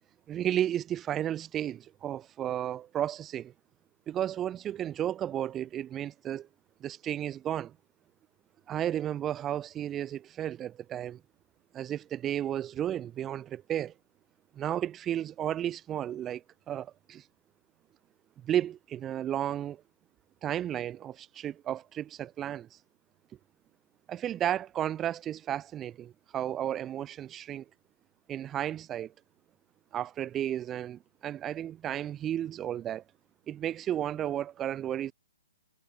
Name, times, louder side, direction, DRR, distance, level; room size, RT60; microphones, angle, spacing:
voice 1, 0.3-3.5 4.1-6.5 6.8-7.8 8.7-11.2 11.7-13.9 14.5-17.2 18.4-19.8 20.4-22.8 24.1-27.6 28.3-29.1 29.9-33.0 33.5-35.1, right 11 dB, 20° right, 0.4 m, -33 dB
hypercardioid pair, 135°, 0 cm